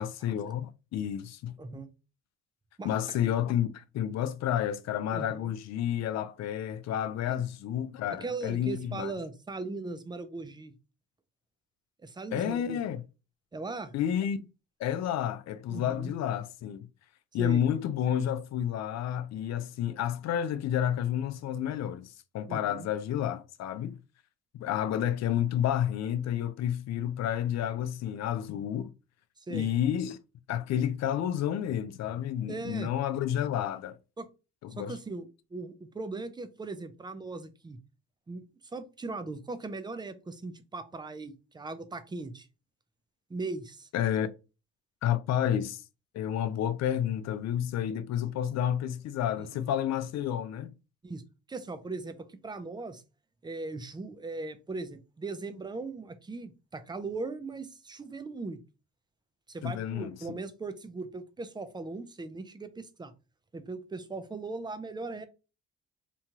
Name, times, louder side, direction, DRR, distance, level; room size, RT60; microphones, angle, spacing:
voice 1, 0.0-1.5 2.8-9.1 12.3-13.0 13.9-14.5 14.8-16.9 17.3-24.0 24.5-28.9 29.5-30.2 30.5-34.0 34.6-34.9 43.9-44.3 45.0-45.8 46.1-50.7 59.6-60.4, left 10 dB, 60° left, 0.4 m, -30 dB
voice 2, 1.6-1.9 2.8-3.3 5.1-5.5 7.3-7.4 8.1-10.7 12.0-12.8 13.5-13.9 15.7-16.1 17.4-17.7 22.5-22.9 29.4-29.7 32.5-32.9 34.2-34.3 34.8-37.8 38.3-38.4 38.7-42.5 43.3-43.9 49.4-49.6 51.0-51.2 51.5-53.0 53.4-58.6 59.5-63.1 63.5-65.3, right 3 dB, 15° right, 0.4 m, -39 dB
3.0 x 2.2 x 2.8 m
cardioid pair, 90°, 30 cm